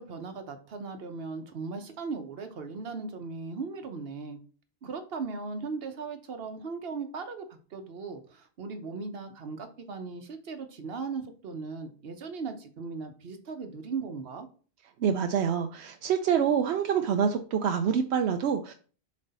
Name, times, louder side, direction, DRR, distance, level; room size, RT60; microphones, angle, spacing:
voice 1, 0.0-4.4 4.8-14.5, right 4 dB, 65° right, 7 dB, 1.1 m, -38 dB
voice 2, 15.0-18.7, right 7 dB, 85° right, 6 dB, 0.9 m, -26 dB
7.5 x 3.2 x 4.0 m, 0.39 s
omnidirectional pair, 1.1 m